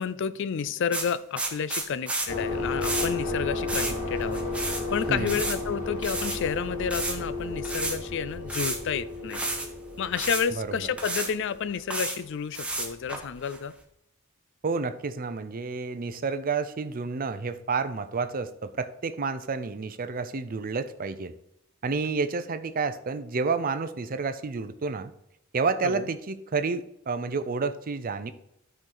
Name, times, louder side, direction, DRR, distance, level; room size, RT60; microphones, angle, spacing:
voice 1, 0.0-9.4 10.0-13.7 25.8-26.0, left 7 dB, 60° left, 15 dB, 0.4 m, -30 dB
sound 1, 0.9-2.3 2.8-3.1 3.7-4.8 5.1-5.6 6.0-6.4 6.9-7.2 7.6-8.0 8.5-8.9 9.3-9.7 10.2-10.5 11.0-11.3 11.7-12.2 12.5-13.6, right 2 dB, 5° right, 1.2 m, -31 dB
sound 2, 2.3-11.8, left 2 dB, 40° left, 1.7 m, -33 dB
voice 2, 5.1-5.4 10.5-10.9 14.6-21.3 21.8-25.1 25.5-28.3, right 4 dB, 45° right, 11 dB, 0.5 m, -30 dB
12.5 x 4.5 x 3.9 m, 0.77 s
head